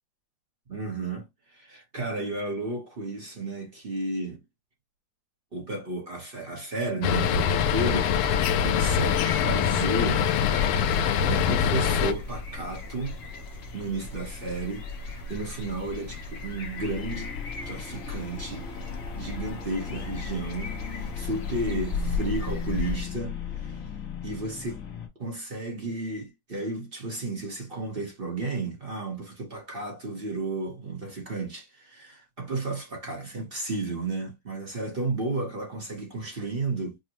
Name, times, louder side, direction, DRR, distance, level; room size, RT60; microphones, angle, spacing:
voice 1, 0.7-4.4 5.5-10.2 11.3-13.2 13.7-17.3 17.6-18.7 19.1-23.8 24.2-24.8 25.2-37.0, right 2 dB, 35° right, 0.9 m, -33 dB
sound 1, 7.0-12.1, left 8 dB, 85° left, 1.5 m, -24 dB
sound 2, 7.1-23.0, left 3 dB, 70° left, 0.5 m, -37 dB
sound 3, 16.8-25.1, left 8 dB, 55° left, 1.0 m, -37 dB
5.2 x 2.1 x 2.9 m
omnidirectional pair, 2.3 m